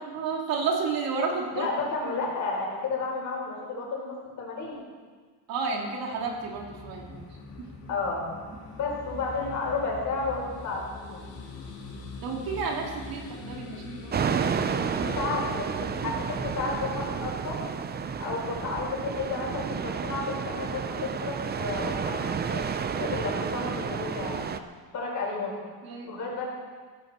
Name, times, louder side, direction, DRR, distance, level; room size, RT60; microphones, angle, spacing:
voice 1, 0.1-1.7 5.5-7.2 7.6-7.7 12.2-15.1 25.8-26.2, right 4 dB, 60° right, 0 dB, 2.6 m, -32 dB
voice 2, 1.5-4.8 7.9-8.3 8.7-10.8 11.1-11.2 14.9-17.6 18.2-24.4 24.9-25.5 26.1-26.4, left 3 dB, 50° left, -3 dB, 4.8 m, -32 dB
sound 1, 6.1-17.1, left 3 dB, 70° left, 4.1 m, -43 dB
sound 2, 14.1-24.6, right 6 dB, 25° right, 0.6 m, -31 dB
16.5 x 13.5 x 4.4 m, 1.5 s
cardioid pair, 145°, 39 cm